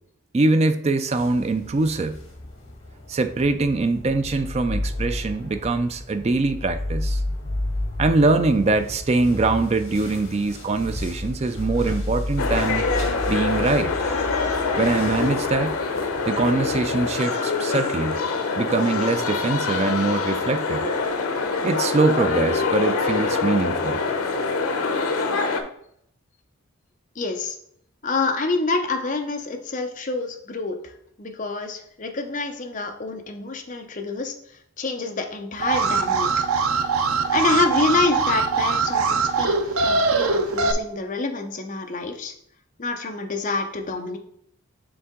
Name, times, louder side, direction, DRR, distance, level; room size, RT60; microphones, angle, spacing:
voice 1, 0.3-2.2 3.1-7.2 8.0-12.9 13.3-13.9 14.8-15.8 16.3-18.2 18.6-20.8 21.6-24.0, right 3 dB, 30° right, 9 dB, 0.3 m, -23 dB
sound 1, 1.1-17.2, left 1 dB, 75° left, 1.8 m, -32 dB
sound 2, 12.4-25.6, left 4 dB, 90° left, 0.7 m, -25 dB
voice 2, 27.2-27.6 28.0-30.8 31.2-34.3 34.8-36.3 37.0-42.3 42.8-44.2, left 3 dB, 35° left, 4 dB, 0.7 m, -27 dB
Alarm, 35.6-40.7, right 4 dB, 80° right, 0.5 m, -22 dB
7.0 x 3.7 x 3.7 m, 0.70 s
head